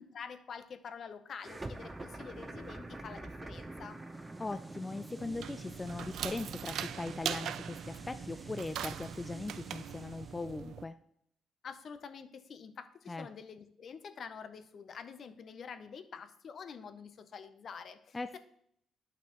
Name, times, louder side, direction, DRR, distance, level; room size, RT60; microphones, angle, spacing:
voice 1, 0.0-4.1 11.6-18.4, left 6 dB, 55° left, 10 dB, 0.7 m, -47 dB
sound 1, 1.4-10.5, right 2 dB, 20° right, 0.8 m, -46 dB
voice 2, 4.4-10.9 13.1-13.3 18.1-18.4, left 3 dB, 20° left, 10 dB, 0.3 m, -40 dB
sound 2, 5.2-10.8, right 10 dB, 75° right, 0.3 m, -41 dB
10.0 x 5.9 x 3.0 m, 0.69 s
cardioid pair, 90°, 0 cm